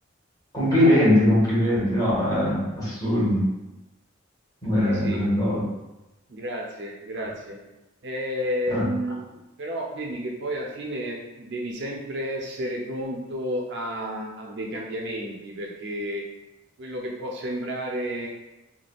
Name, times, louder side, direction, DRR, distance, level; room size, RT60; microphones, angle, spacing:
voice 1, 0.5-3.4 4.6-5.6 8.7-8.9, left 1 dB, 20° left, -8 dB, 1.1 m, -21 dB
voice 2, 4.8-5.4 6.3-7.6 8.0-16.2 16.8-18.3, equal, 60° right, -1 dB, 0.4 m, -31 dB
3.3 x 2.2 x 2.3 m, 0.99 s
head